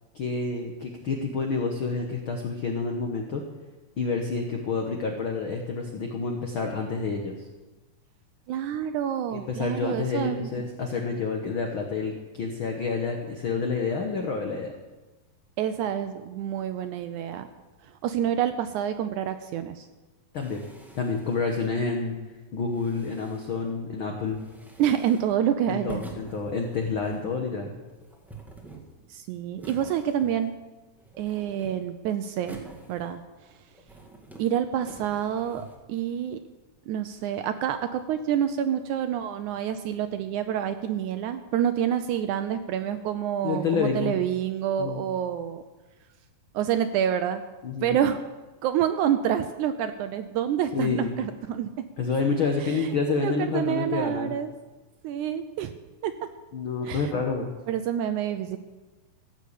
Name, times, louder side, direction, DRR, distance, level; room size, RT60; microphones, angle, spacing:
voice 1, 0.1-3.4 4.0-7.5 9.3-14.7 20.3-20.6 20.9-22.2 22.5-24.4 25.7-27.7 43.4-44.1 44.8-45.0 47.6-48.0 50.7-51.1 52.0-54.3 56.5-57.5, left 4 dB, 75° left, 3 dB, 1.2 m, -28 dB
voice 2, 8.5-10.7 15.6-17.5 18.0-19.9 24.8-26.0 29.1-30.5 31.2-32.6 32.9-33.2 34.4-36.4 36.9-45.6 46.5-47.4 47.8-48.2 48.6-51.7 52.6-54.5 55.0-55.7 56.0-56.1 56.9-57.1 57.7-58.6, right 9 dB, 80° right, 9 dB, 1.8 m, -27 dB
sound 1, 20.3-21.8 22.6-23.7 24.3-25.4 25.9-27.3 27.9-29.1 29.6-30.7 31.0-32.0 32.4-33.4 33.7-34.5 34.8-35.8, right 3 dB, ahead, 0.5 m, -47 dB
15.5 x 6.8 x 8.4 m, 1.2 s
omnidirectional pair, 3.9 m